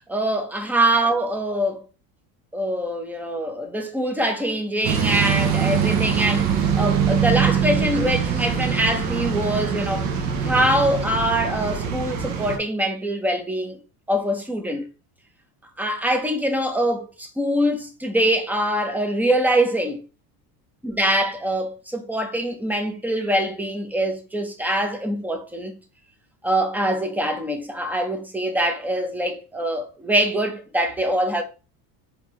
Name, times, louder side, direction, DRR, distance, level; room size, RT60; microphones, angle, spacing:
voice 1, 0.1-1.8 2.5-10.1 10.4-13.8 14.1-14.9 15.8-20.0 20.8-25.7 26.4-31.4, right 1 dB, 5° right, 0.7 m, -24 dB
sound 1, 4.8-12.6, right 7 dB, 55° right, 0.9 m, -23 dB
4.3 x 2.9 x 3.0 m
supercardioid pair, 115°, 44 cm